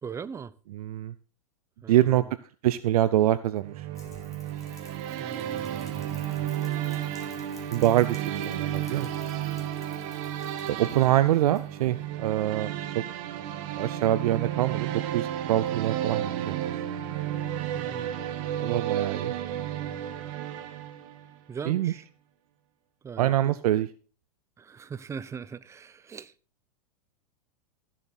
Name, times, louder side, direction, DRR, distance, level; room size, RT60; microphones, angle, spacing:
voice 1, 0.0-0.5 1.8-2.3 5.2-6.5 17.7-18.1 21.5-22.1 23.0-23.6 24.6-26.3, right 6 dB, 15° right, 0.6 m, -40 dB
voice 2, 0.7-1.1 1.9-2.2 2.6-3.9 7.7-9.1 10.8-13.0 13.7-16.5 18.6-19.3 21.7-21.9 23.2-23.9, right 13 dB, 70° right, 0.6 m, -25 dB
sound 1, 3.6-21.3, right 11 dB, 55° right, 1.4 m, -32 dB
Rain, 3.9-12.0, left 4 dB, 15° left, 2.7 m, -54 dB
14.5 x 7.5 x 4.1 m
hypercardioid pair, 120°, 20 cm